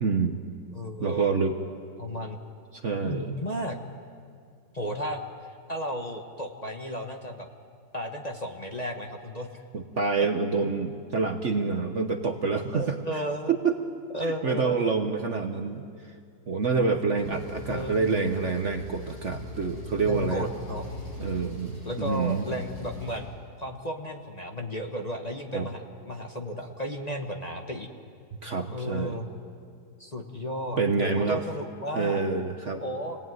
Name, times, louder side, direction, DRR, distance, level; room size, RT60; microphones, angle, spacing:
voice 1, 0.0-0.4 1.0-1.6 2.7-3.3 9.7-13.0 13.6-13.8 14.2-15.9 16.5-20.5 21.2-21.7 22.0-22.4 25.5-25.7 28.4-29.2 30.8-31.4 31.9-32.8, right 4 dB, 45° right, 6 dB, 1.2 m, -27 dB
voice 2, 0.7-1.3 2.0-2.4 3.0-3.8 4.7-5.2 5.7-7.5 7.9-9.6 12.7-13.5 14.1-14.9 17.3-18.0 20.0-21.0 21.8-23.3 23.6-27.9 28.7-29.3 30.0-32.2 32.8-33.2, equal, 25° left, 3 dB, 1.4 m, -34 dB
Engine, 17.2-23.2, left 1 dB, 65° left, 7.9 m, -41 dB
26.5 x 19.0 x 9.4 m, 2.3 s
omnidirectional pair, 1.9 m